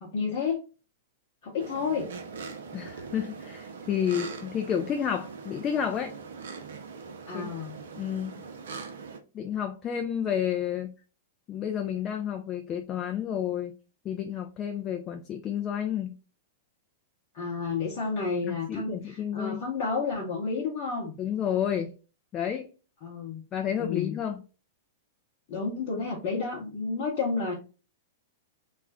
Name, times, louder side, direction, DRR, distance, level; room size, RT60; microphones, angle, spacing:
voice 1, 0.0-0.6 1.4-2.1 7.3-7.8 17.3-21.2 23.0-23.4 23.8-24.2 25.5-27.5, left 4 dB, 50° left, 0.8 m, -31 dB
sound 1, 1.6-9.2, right 5 dB, 70° right, 0.5 m, -42 dB
voice 2, 2.7-6.1 7.3-7.5 8.0-8.4 9.3-10.9 11.5-13.7 14.0-16.2 18.4-19.6 21.2-21.9 22.3-22.7 23.5-24.4, left 9 dB, 30° left, 0.3 m, -30 dB
2.4 x 2.1 x 3.5 m
figure-of-eight pair, 105°, 0 cm